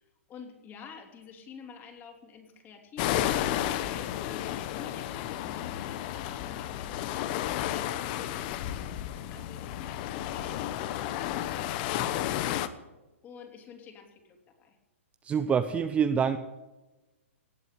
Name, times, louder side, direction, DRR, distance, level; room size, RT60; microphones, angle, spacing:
voice 1, 0.0-6.1 6.4-12.9 13.2-14.8, left 6 dB, 25° left, 4 dB, 3.4 m, -49 dB
sound 1, 3.0-12.7, left 12 dB, 40° left, 1.1 m, -32 dB
voice 2, 15.2-16.4, right 7 dB, 15° right, 9 dB, 0.8 m, -26 dB
18.5 x 8.3 x 8.4 m, 1.1 s
hypercardioid pair, 130°, 7 cm